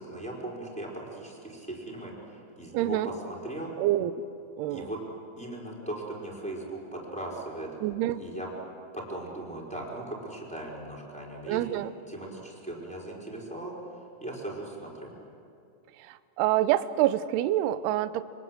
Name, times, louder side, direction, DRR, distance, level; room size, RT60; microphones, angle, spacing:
voice 1, 0.0-3.7 4.7-5.0 5.4-7.7 8.2-8.5 8.9-13.7 14.2-15.1, right 1 dB, ahead, -3 dB, 4.4 m, -38 dB
voice 2, 2.7-3.1 3.8-4.1 4.6-4.9 7.8-8.2 11.5-11.9 16.0-18.2, right 14 dB, 80° right, 13 dB, 2.4 m, -27 dB
27.5 x 23.5 x 7.8 m, 2.5 s
omnidirectional pair, 5.5 m